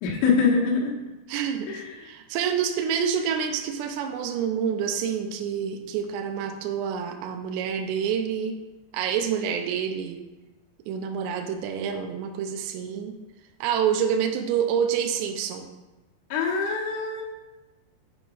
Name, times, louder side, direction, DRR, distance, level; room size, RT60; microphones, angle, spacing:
voice 1, 0.0-0.9 1.7-2.0 16.3-17.2, left 5 dB, 90° left, -2 dB, 3.7 m, -24 dB
voice 2, 1.3-8.6 8.9-10.2 10.9-13.1 13.6-15.7, right 7 dB, 85° right, 4 dB, 2.6 m, -27 dB
8.8 x 4.0 x 4.8 m, 1.1 s
omnidirectional pair, 5.4 m